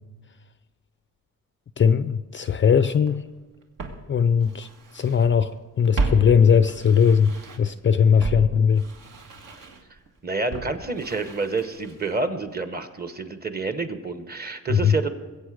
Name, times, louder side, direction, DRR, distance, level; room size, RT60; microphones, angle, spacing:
voice 1, 1.8-3.2 4.1-4.7 4.9-5.5 5.8-8.8 14.7-14.9, left 7 dB, 35° left, 12 dB, 0.4 m, -19 dB
Walk footsteps, 3.1-3.2 3.8-5.3 5.5-7.8 8.2-12.2 12.5-12.6, right 3 dB, 70° right, 1.8 m, -33 dB
voice 2, 10.2-15.1, right 3 dB, 30° right, 9 dB, 1.0 m, -28 dB
21.0 x 8.3 x 4.9 m, 1.3 s
cardioid pair, 130°, 34 cm